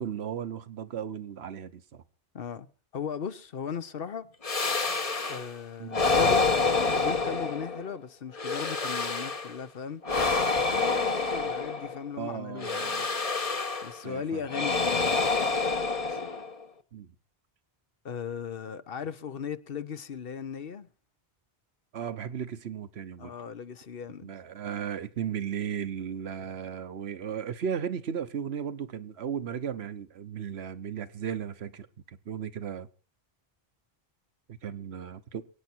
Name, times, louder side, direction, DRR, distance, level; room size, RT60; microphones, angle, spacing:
voice 1, 0.0-2.0 5.8-6.1 12.2-13.1 14.0-14.4 16.9-17.1 21.9-23.3 24.2-32.9 34.5-35.4, right 8 dB, 85° right, 1.2 m, -35 dB
voice 2, 2.3-2.7 2.9-4.3 5.3-6.5 6.8-10.2 10.7-13.0 13.8-15.5 16.1-16.2 18.0-20.9 23.2-24.3, left 7 dB, 65° left, 1.1 m, -37 dB
sound 1, 4.4-5.5 5.9-7.9 8.3-9.6 10.0-12.0 12.6-14.0 14.5-16.6, left 4 dB, 35° left, 1.1 m, -27 dB
23.5 x 9.5 x 4.5 m
omnidirectional pair, 1.1 m